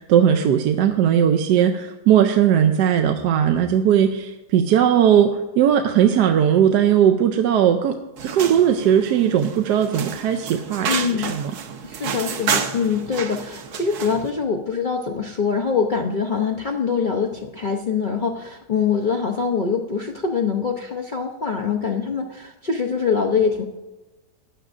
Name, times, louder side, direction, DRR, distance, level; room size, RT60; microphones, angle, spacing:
voice 1, 0.0-7.9 8.3-11.5, right 9 dB, 85° right, 6 dB, 1.2 m, -18 dB
sound 1, 8.2-14.3, right 7 dB, 70° right, 1.3 m, -30 dB
voice 2, 10.9-11.4 11.8-23.6, left 6 dB, 60° left, 1 dB, 0.5 m, -24 dB
15.5 x 9.9 x 2.5 m, 1.1 s
omnidirectional pair, 1.8 m